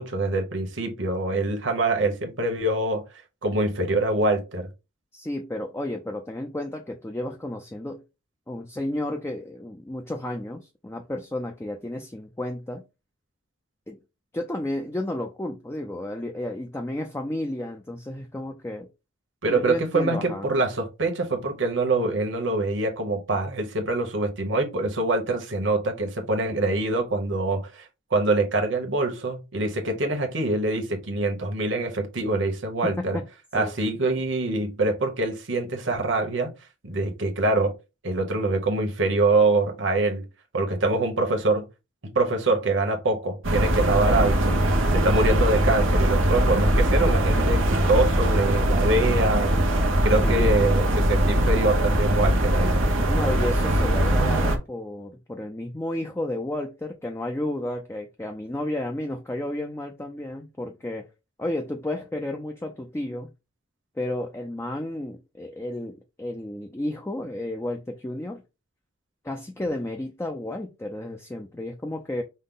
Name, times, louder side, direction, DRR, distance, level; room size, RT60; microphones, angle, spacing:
voice 1, 0.0-3.0 3.4-4.7 19.4-33.2 33.5-36.5 36.8-37.7 38.0-40.2 40.5-41.6 42.1-44.6 44.9-49.5 50.0-52.7, right 2 dB, 65° right, 1.2 m, -24 dB
voice 2, 5.1-8.0 8.5-12.8 13.9-14.0 14.3-18.9 19.5-20.5 32.8-33.3 33.5-33.7 50.2-50.7 52.7-61.1 61.4-63.3 64.0-68.4 69.2-72.2, left 1 dB, 15° left, 0.5 m, -32 dB
sound 1, 43.4-54.6, right 1 dB, 90° right, 1.0 m, -21 dB
5.4 x 2.2 x 3.8 m
head